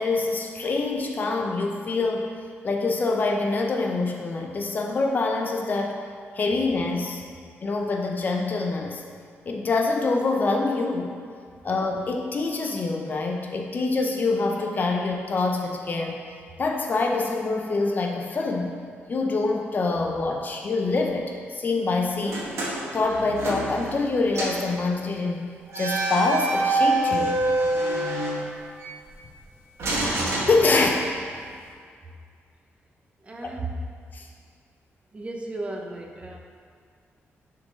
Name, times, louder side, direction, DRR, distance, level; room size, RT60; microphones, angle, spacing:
voice 1, 0.0-2.3 2.6-6.0 6.3-7.2 7.6-9.0 9.5-11.1 11.6-16.2 16.6-18.7 19.1-22.4 22.9-25.5 25.7-27.4 30.5-30.9 34.1-34.3, left 3 dB, 40° left, 1 dB, 0.7 m, -25 dB
sound 1, 22.2-24.1 24.3-24.7 25.7-28.9 29.8-31.2, right 2 dB, 80° right, 1.5 m, -26 dB
voice 2, 33.2-33.9 35.1-36.4, right 2 dB, 25° right, 1 dB, 0.8 m, -34 dB
9.4 x 4.0 x 3.8 m, 2.2 s
cardioid pair, 125°, 5 cm